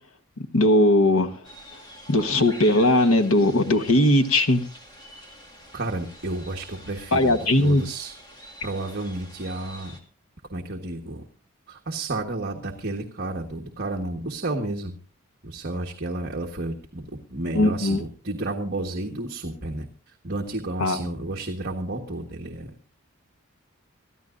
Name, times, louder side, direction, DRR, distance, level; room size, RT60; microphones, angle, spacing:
voice 1, 0.4-1.5 2.1-4.6 7.1-7.8 17.5-18.0 20.8-21.0, left 1 dB, 85° left, 7 dB, 1.2 m, -19 dB
sound 1, 1.4-10.0, equal, 20° left, 2.2 m, -46 dB
voice 2, 5.7-8.1 8.6-10.0 10.5-11.2 11.7-15.0 15.4-22.7, right 2 dB, 45° right, 2 dB, 1.4 m, -31 dB
24.5 x 14.0 x 2.6 m, 0.37 s
head